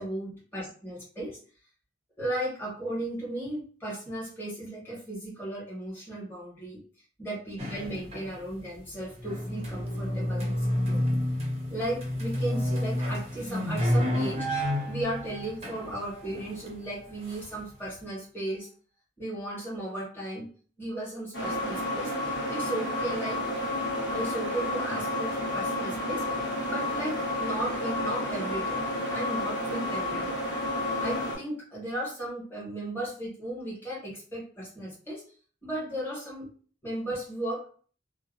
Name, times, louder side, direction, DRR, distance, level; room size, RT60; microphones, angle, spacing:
voice 1, 0.0-1.4 2.2-6.8 7.2-11.0 11.7-14.5 14.9-18.7 19.2-20.5 20.8-22.1 22.5-23.4 24.1-26.2 26.6-28.8 29.1-30.4 31.0-35.2 35.6-36.5 36.8-37.7, right 1 dB, 10° left, -7 dB, 1.2 m, -35 dB
sound 1, 7.6-8.6 9.0-17.9, left 1 dB, 35° right, 0.6 m, -30 dB
sound 2, 21.3-31.3, left 1 dB, 65° left, 1.0 m, -31 dB
2.6 x 2.1 x 2.5 m, 0.42 s
head